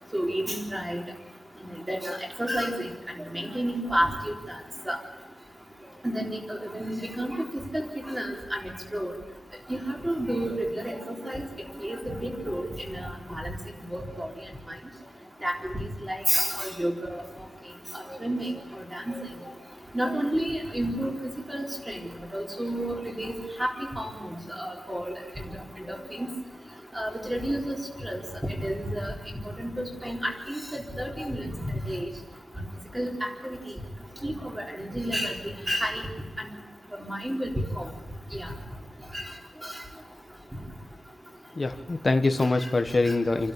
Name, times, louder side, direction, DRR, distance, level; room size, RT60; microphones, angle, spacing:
voice 1, 0.1-1.0 1.9-2.9 3.3-4.3 4.9-5.0 6.0-9.1 9.7-11.4 11.8-13.6 13.9-14.3 15.4-15.5 16.1-17.2 18.1-18.5 18.9-19.3 19.9-21.2 21.5-22.0 22.3-23.7 24.0-24.1 24.6-25.1 25.5-25.6 25.9-26.3 26.9-27.8 28.0-28.2 28.6-29.1 29.6-30.2 30.5-32.1 32.9-33.1 33.4-33.6 34.2-35.4 35.7-36.0 36.4-36.5 37.0-37.5 37.8-37.9 38.3-38.5 39.1-39.2 43.1-43.2, equal, 10° right, 0 dB, 3.9 m, -30 dB
voice 2, 41.5-43.5, left 3 dB, 30° left, 6 dB, 1.4 m, -24 dB
29.0 x 12.5 x 8.6 m, 1.1 s
wide cardioid pair, 160°, 0 cm